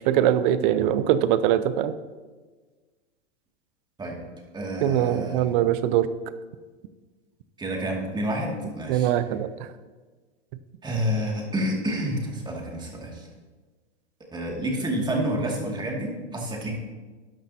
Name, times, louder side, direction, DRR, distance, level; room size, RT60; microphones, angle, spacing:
voice 1, 0.1-1.9 4.8-6.1 8.9-9.7, right 11 dB, 45° right, 13 dB, 0.8 m, -22 dB
voice 2, 4.5-5.5 7.6-9.1 10.8-13.3 14.3-16.8, equal, 15° right, -1 dB, 2.4 m, -29 dB
12.5 x 10.5 x 2.9 m, 1.3 s
hypercardioid pair, 110°, 34 cm